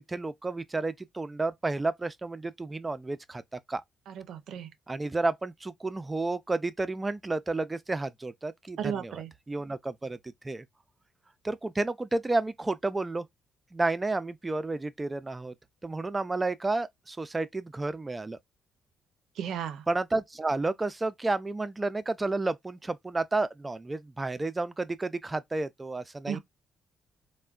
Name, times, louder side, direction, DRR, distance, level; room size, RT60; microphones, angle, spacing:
voice 1, 0.0-3.8 4.9-9.2 9.5-10.2 10.4-10.6 11.4-13.3 13.7-15.5 15.8-18.4 19.9-26.4, right 2 dB, 20° right, 0.4 m, -31 dB
voice 2, 4.1-4.7 8.8-9.3 19.4-19.8 26.3-26.4, right 8 dB, 75° right, 0.5 m, -34 dB
3.4 x 2.1 x 2.3 m
cardioid pair, 90°, 0 cm